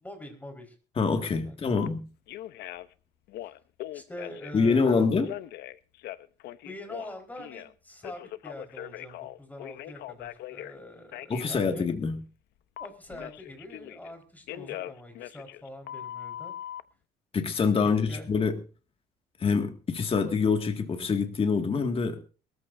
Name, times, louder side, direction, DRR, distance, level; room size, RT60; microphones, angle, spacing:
voice 1, 0.0-0.7 1.5-1.7 3.9-5.1 6.6-11.9 12.8-16.6 18.1-18.3, left 1 dB, 10° left, 4 dB, 4.5 m, -44 dB
voice 2, 1.0-2.1 4.5-5.3 11.3-12.2 17.3-18.6 19.4-22.2, left 5 dB, 35° left, 5 dB, 2.1 m, -25 dB
Telephone, 1.8-1.9 2.3-2.9 3.3-4.7 5.2-7.7 8.0-10.8 11.1-11.5 12.8-14.1 14.5-16.8, left 13 dB, 75° left, 0.8 m, -40 dB
22.5 x 14.0 x 2.7 m, 0.36 s
cardioid pair, 110°, 17 cm